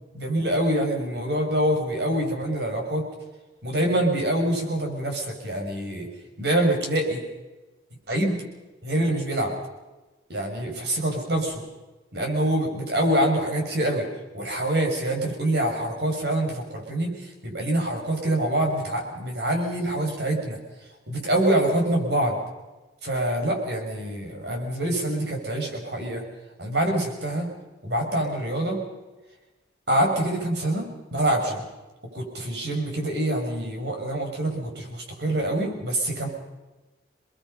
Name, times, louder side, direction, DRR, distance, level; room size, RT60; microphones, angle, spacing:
voice 1, 0.1-3.0 3.6-6.1 6.4-7.2 8.1-8.4 8.8-9.5 10.3-11.6 12.1-14.1 14.3-20.6 21.1-22.4 23.0-26.2 26.6-27.5 27.8-28.8 29.9-31.7 32.1-36.3, right 1 dB, 65° right, 2 dB, 6.6 m, -25 dB
29.5 x 20.5 x 5.8 m, 1.1 s
head